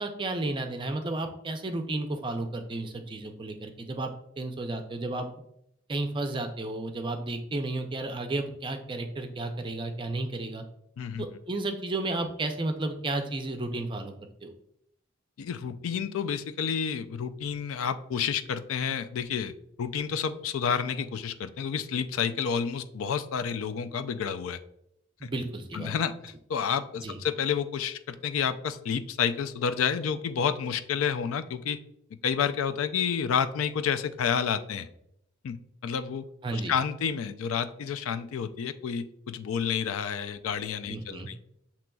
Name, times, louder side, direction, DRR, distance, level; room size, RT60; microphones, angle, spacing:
voice 1, 0.0-5.3 5.9-10.6 11.2-14.1 14.4-14.5 25.2-25.9 27.0-27.2 36.4-36.7 40.9-41.3, right 2 dB, 25° right, 6 dB, 0.4 m, -32 dB
voice 2, 15.4-19.5 19.8-24.6 25.2-25.3 25.7-31.8 32.2-34.9 35.4-35.6 35.8-36.3 36.5-41.4, left 7 dB, 80° left, 11 dB, 0.4 m, -30 dB
7.4 x 2.9 x 2.3 m, 0.76 s
head